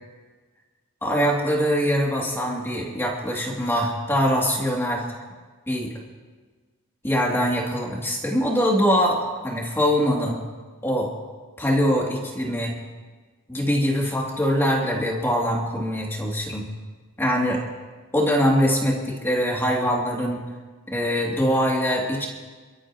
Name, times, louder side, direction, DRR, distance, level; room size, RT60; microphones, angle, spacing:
voice 1, 1.0-5.0 5.7-5.9 7.0-10.4 10.8-11.1 11.6-12.7 13.5-16.6 17.2-17.6 18.1-20.4 20.9-22.3, equal, 10° left, -3 dB, 2.9 m, -23 dB
29.5 x 13.5 x 3.1 m, 1.4 s
head